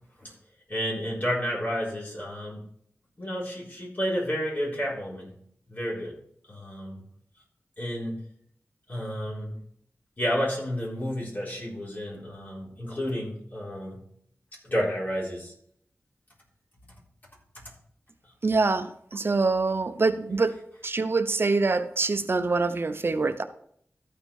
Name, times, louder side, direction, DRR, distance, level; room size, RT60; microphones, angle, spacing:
voice 1, 0.7-2.6 3.2-5.4 5.7-6.2 6.5-7.0 7.8-8.2 8.9-9.6 10.2-14.0 14.6-15.5, equal, 40° left, -4 dB, 4.0 m, -31 dB
voice 2, 18.4-20.5 20.8-23.4, right 3 dB, 50° right, 9 dB, 0.8 m, -25 dB
13.5 x 5.2 x 4.4 m, 0.66 s
wide cardioid pair, 95°, 5 cm